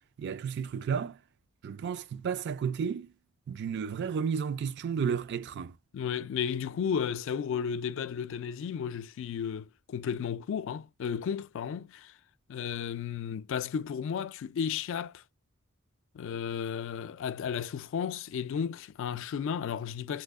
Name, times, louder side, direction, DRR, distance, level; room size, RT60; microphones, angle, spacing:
voice 1, 0.2-1.2 1.6-3.1 3.5-5.7, right 6 dB, 55° right, 0.3 m, -32 dB
voice 2, 5.9-12.1 12.5-15.2 16.1-20.2, left 7 dB, 65° left, 0.3 m, -33 dB
3.1 x 2.0 x 3.5 m
head